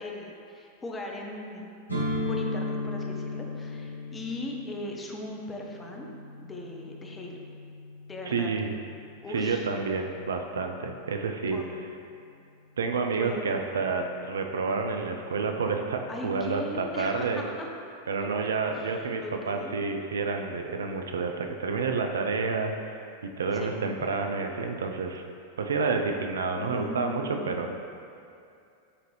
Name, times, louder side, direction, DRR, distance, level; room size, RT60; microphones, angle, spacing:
voice 1, 0.0-1.7 2.3-6.1 6.4-7.4 8.1-8.5 9.2-9.7 11.5-11.7 13.2-13.5 16.1-17.7 18.2-18.3 18.7-19.7 23.5-23.8 26.6-27.6, left 1 dB, 15° left, 0 dB, 0.5 m, -39 dB
sound 1, 1.9-9.7, left 2 dB, 85° right, 0.8 m, -36 dB
voice 2, 8.3-8.7 9.3-11.6 12.8-17.4 18.1-23.0 23.4-25.2 25.6-27.7, right 4 dB, 65° right, 4 dB, 0.3 m, -29 dB
6.6 x 2.6 x 3.1 m, 2.5 s
figure-of-eight pair, 90°, 0 cm